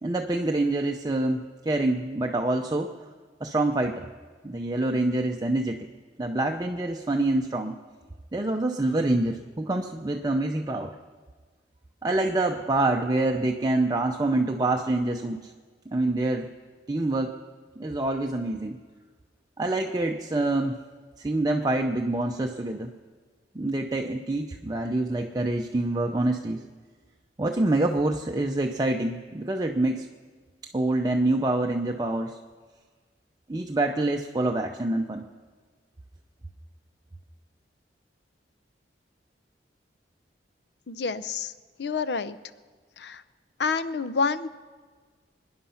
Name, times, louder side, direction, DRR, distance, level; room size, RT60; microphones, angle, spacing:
voice 1, 0.0-2.9 3.4-4.0 4.4-5.9 6.2-7.8 8.3-10.9 12.0-15.4 15.9-16.5 16.9-17.3 17.8-18.8 19.6-20.7 21.2-22.9 23.5-26.6 27.4-30.1 30.7-32.3 33.5-35.3, right 2 dB, 20° right, 3 dB, 0.6 m, -26 dB
voice 2, 40.9-41.5 41.8-42.4 43.0-43.2 43.6-44.5, left 4 dB, 70° left, 14 dB, 0.6 m, -28 dB
24.5 x 10.5 x 5.7 m, 1.5 s
head